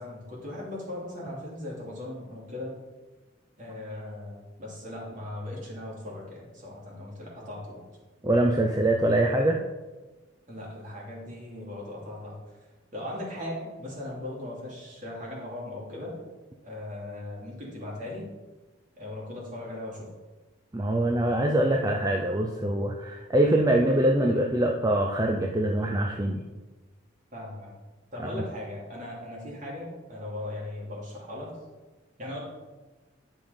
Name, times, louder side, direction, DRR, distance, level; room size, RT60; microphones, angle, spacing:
voice 1, 0.0-2.8 3.6-7.8 10.5-12.4 12.9-16.1 16.6-18.3 19.0-20.1 27.3-27.7 28.1-31.5 32.2-32.4, left 1 dB, 40° right, -3 dB, 2.9 m, -38 dB
voice 2, 8.2-9.6 20.7-26.4 28.3-28.4, right 1 dB, 20° right, 1 dB, 0.6 m, -24 dB
10.5 x 5.6 x 5.2 m, 1.2 s
head